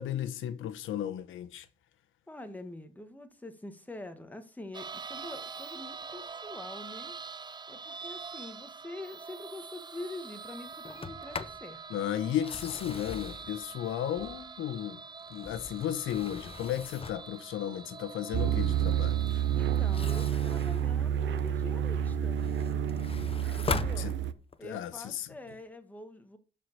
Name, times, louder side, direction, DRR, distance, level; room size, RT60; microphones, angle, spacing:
voice 1, 0.0-1.7 11.9-15.0 15.3-19.2 24.0-24.1 24.6-25.3, left 11 dB, 80° left, 1.1 m, -34 dB
voice 2, 2.3-7.1 7.7-11.8 19.5-22.4 23.5-24.1 24.6-26.4, left 2 dB, 10° left, 1.6 m, -45 dB
sound 1, 4.7-20.3, right 5 dB, 20° right, 0.5 m, -45 dB
Sliding door, 10.8-11.7 12.3-14.6 15.2-17.4 19.8-21.7 22.2-24.7, left 5 dB, 30° left, 0.8 m, -40 dB
sound 2, 18.3-24.3, right 10 dB, 70° right, 0.8 m, -29 dB
11.5 x 4.9 x 6.6 m
cardioid pair, 90°, 20 cm